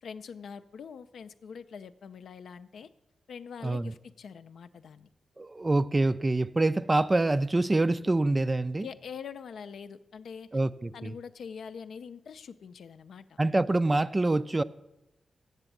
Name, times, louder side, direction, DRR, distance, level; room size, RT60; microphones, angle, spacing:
voice 1, 0.0-2.9 3.3-5.1 8.8-10.6 10.9-13.4, left 6 dB, 75° left, 0.4 m, -44 dB
voice 2, 5.4-8.9 10.5-11.1 13.4-14.6, right 2 dB, 30° right, 0.4 m, -26 dB
8.1 x 6.8 x 7.2 m
supercardioid pair, 45°, 0 cm